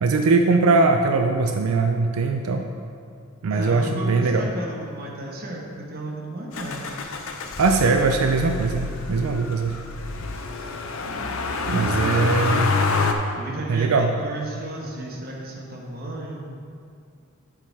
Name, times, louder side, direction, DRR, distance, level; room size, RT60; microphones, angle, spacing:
voice 1, 0.0-2.6 3.4-4.4 7.6-9.8 11.7-12.7 13.7-14.1, right 3 dB, 90° right, 5 dB, 0.4 m, -21 dB
voice 2, 3.5-6.8 11.8-12.7 13.3-16.4, right 1 dB, 45° right, -2 dB, 1.2 m, -33 dB
Motor vehicle (road), 6.5-13.1, left 3 dB, 75° left, 0.6 m, -27 dB
8.7 x 4.9 x 4.6 m, 2.3 s
head